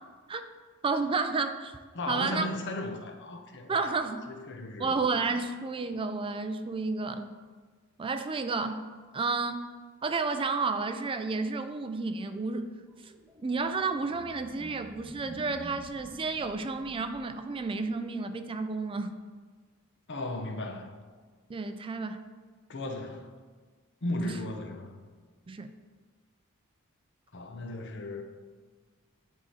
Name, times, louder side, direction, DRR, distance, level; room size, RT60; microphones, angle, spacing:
voice 1, 0.8-1.8 2.1-2.5 3.7-4.2 4.8-7.3 8.0-8.9 9.1-9.6 10.0-12.7 13.0-13.1 13.4-19.2 21.5-22.2 24.2-24.3 25.5-25.7, right 4 dB, 25° right, 8 dB, 0.3 m, -31 dB
voice 2, 1.9-4.9 20.1-21.0 22.7-23.3 24.0-25.0 27.3-28.2, left 1 dB, 55° left, 5 dB, 0.8 m, -36 dB
sound 1, 12.9-17.9, equal, 5° right, 1.3 m, -49 dB
10.5 x 3.7 x 4.2 m, 1.5 s
head